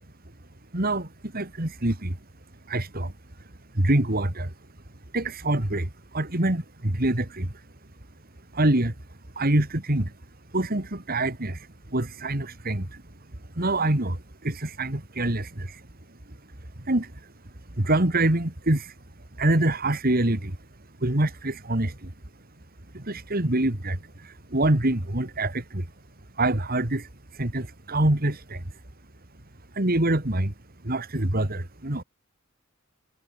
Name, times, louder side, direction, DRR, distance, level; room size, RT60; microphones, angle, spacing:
voice 1, 0.7-2.2 2.7-3.1 3.4-3.5 3.7-4.5 5.1-7.7 8.5-8.9 9.4-10.1 10.5-13.0 13.5-15.8 16.3-16.4 16.8-17.3 17.8-19.0 19.4-20.6 21.0-22.1 22.9-25.9 26.4-28.8 29.7-30.5 30.8-32.0, right 1 dB, 45° right, 2.7 m, -25 dB
head